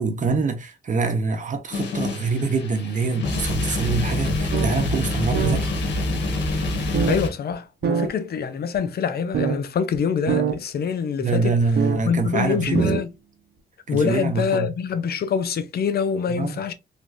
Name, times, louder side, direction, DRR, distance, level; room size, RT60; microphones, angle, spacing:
voice 1, 0.0-5.7 11.2-12.9 13.9-14.7 16.3-16.6, right 4 dB, 45° right, 1.0 m, -25 dB
sound 1, 1.7-7.3, left 2 dB, 85° left, 1.1 m, -26 dB
sound 2, 4.5-4.7 5.0-5.1 5.3-5.6 6.9-7.2 7.8-8.1 8.8-8.9 9.3-9.6 9.9-10.0 10.3-10.6 11.8-12.0 12.6-13.0, right 7 dB, 70° right, 0.7 m, -23 dB
voice 2, 7.1-11.6 12.0-13.1 13.9-16.7, left 6 dB, 60° left, 0.6 m, -25 dB
3.3 x 3.0 x 2.5 m
cardioid pair, 80°, 18 cm